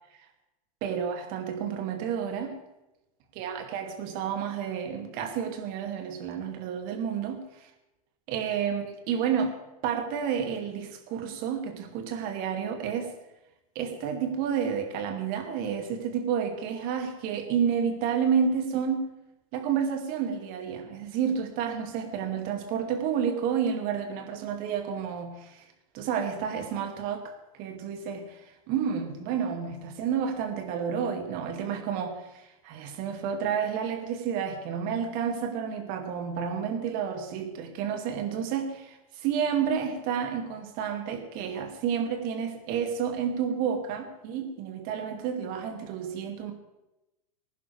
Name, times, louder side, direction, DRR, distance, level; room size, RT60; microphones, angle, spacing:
voice 1, 0.8-2.6 3.4-7.7 8.3-13.1 13.8-19.1 19.5-25.6 25.9-28.4 28.7-46.5, right 7 dB, 50° right, 5 dB, 2.3 m, -30 dB
20.0 x 11.0 x 3.4 m, 0.96 s
hypercardioid pair, 105°, 19 cm